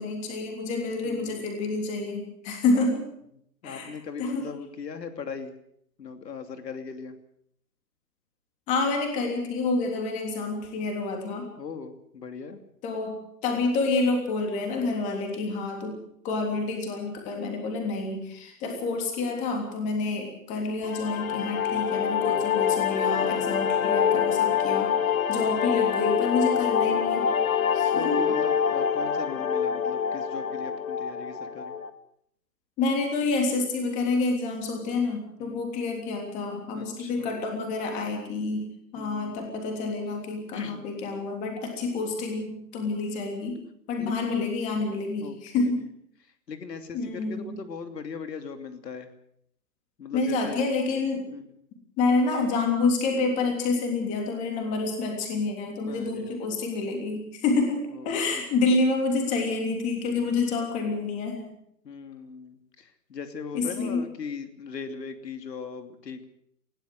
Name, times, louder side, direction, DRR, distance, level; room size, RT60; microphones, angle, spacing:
voice 1, 0.0-3.0 3.6-3.9 4.2-4.4 8.7-11.5 12.8-24.9 25.3-27.3 27.7-28.2 32.8-38.6 38.9-43.6 43.9-45.8 46.9-47.5 50.1-51.3 52.0-61.4 63.5-64.0, left 3 dB, 15° left, 3 dB, 3.3 m, -28 dB
voice 2, 1.0-1.5 2.7-2.9 3.6-5.5 6.0-7.2 11.6-12.6 24.5-24.8 26.5-26.7 27.9-31.8 35.4-35.7 36.7-37.3 39.0-39.6 40.5-40.8 44.0-44.4 45.2-45.7 46.5-49.1 50.0-50.6 51.3-51.4 55.8-56.4 57.9-58.3 60.2-60.4 61.8-66.2, left 5 dB, 75° left, 8 dB, 2.9 m, -39 dB
sound 1, 20.8-31.9, left 8 dB, 55° left, 1.8 m, -25 dB
20.0 x 16.5 x 7.8 m, 0.70 s
hypercardioid pair, 170°, 50 cm